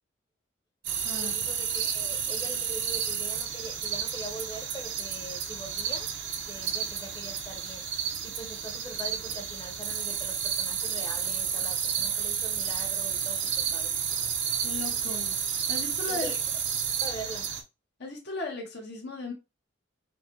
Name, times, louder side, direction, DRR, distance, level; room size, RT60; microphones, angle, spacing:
sound 1, 0.8-17.6, right 8 dB, 70° right, 0.7 m, -31 dB
voice 1, 1.1-6.1 6.5-7.9 8.2-14.0 16.1-16.4 17.0-17.5, equal, 20° left, 0.8 m, -42 dB
voice 2, 14.6-16.3 18.0-19.3, left 3 dB, 60° left, 0.9 m, -37 dB
4.6 x 2.1 x 2.9 m
head